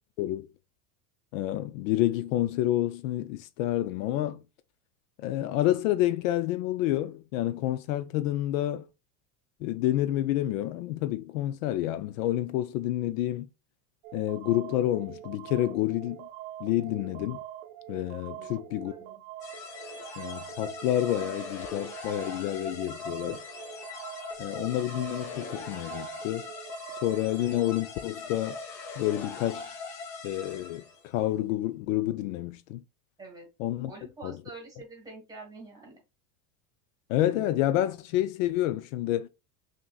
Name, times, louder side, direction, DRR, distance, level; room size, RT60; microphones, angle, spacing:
voice 1, 0.2-0.5 1.3-4.4 5.2-8.9 9.6-13.5 14.1-16.3 16.6-17.4 17.9-18.9 20.2-23.4 24.4-26.5 27.0-28.6 29.0-29.8 30.2-32.8 33.6-33.9 34.2-34.4 37.1-39.3, left 14 dB, 70° left, 0.5 m, -29 dB
sound 1, 14.0-27.8, right 12 dB, 85° right, 0.5 m, -44 dB
voice 2, 18.3-19.2 33.2-33.5 33.9-36.0, right 2 dB, 10° right, 1.3 m, -46 dB
sound 2, 19.4-31.1, left 4 dB, 45° left, 1.5 m, -41 dB
5.9 x 2.8 x 2.3 m
supercardioid pair, 165°, 41 cm